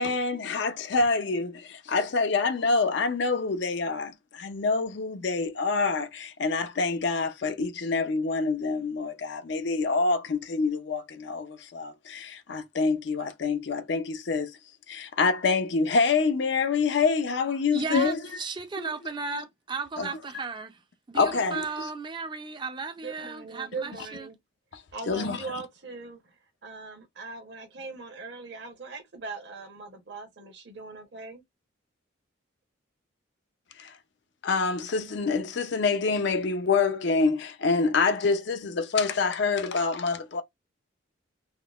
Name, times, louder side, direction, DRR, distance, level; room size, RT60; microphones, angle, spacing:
voice 1, 0.0-14.5 14.9-18.2 18.8-18.9 20.0-20.1 21.1-21.6 24.7-24.8 25.1-25.4 33.8-33.9 34.4-40.4, left 4 dB, 60° left, 0.5 m, -26 dB
voice 2, 17.7-20.8 21.1-24.3, right 4 dB, 25° right, 0.4 m, -35 dB
voice 3, 23.0-24.4 24.9-26.3 26.6-31.4, right 4 dB, 60° right, 0.9 m, -40 dB
3.6 x 2.1 x 2.3 m
head